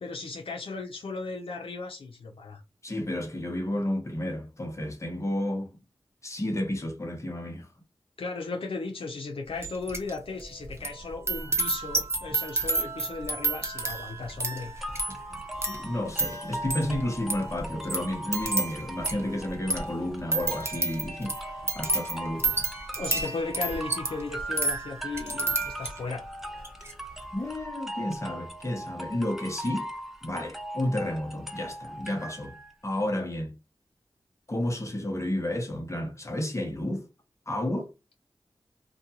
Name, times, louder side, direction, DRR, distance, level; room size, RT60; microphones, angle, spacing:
voice 1, 0.0-2.6 8.2-14.7 21.8-22.0 23.0-26.2, left 3 dB, 75° left, 0.5 m, -36 dB
voice 2, 2.8-5.7 6.2-7.7 15.7-22.5 27.3-29.9 30.2-32.6 32.8-33.5 34.5-37.1 37.5-37.9, left 1 dB, 30° left, 0.9 m, -31 dB
sound 1, 9.6-10.1 10.4-26.2 26.6-26.9, right 2 dB, 25° right, 0.9 m, -31 dB
sound 2, 14.8-32.7, right 1 dB, 5° right, 0.5 m, -39 dB
2.5 x 2.3 x 2.8 m
cardioid pair, 40°, 9 cm